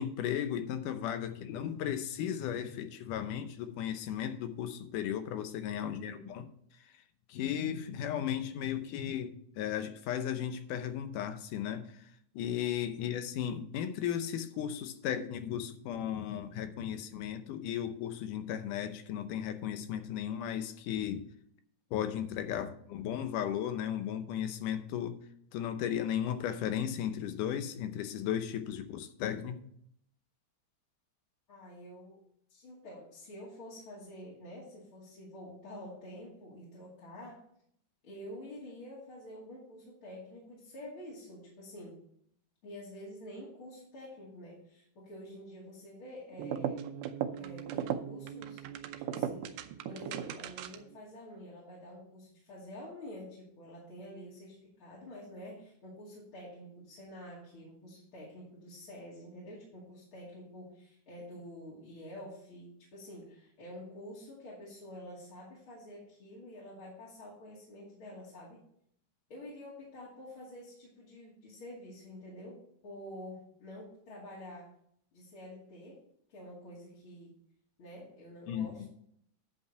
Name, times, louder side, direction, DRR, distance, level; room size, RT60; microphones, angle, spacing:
voice 1, 0.0-6.5 7.3-11.9 12.4-21.3 21.9-25.2 25.5-29.6 78.5-78.9, left 9 dB, 85° left, 10 dB, 2.4 m, -35 dB
voice 2, 5.8-6.3 12.9-13.2 31.5-32.2 32.5-37.4 38.0-42.0 42.6-46.9 47.4-48.6 49.1-68.6 69.3-74.7 75.1-76.0 76.3-77.4 77.8-78.9, left 1 dB, 45° left, -6 dB, 3.0 m, -48 dB
sound 1, 46.3-51.0, right 9 dB, 90° right, 2.2 m, -37 dB
9.9 x 5.5 x 5.6 m, 0.68 s
omnidirectional pair, 3.6 m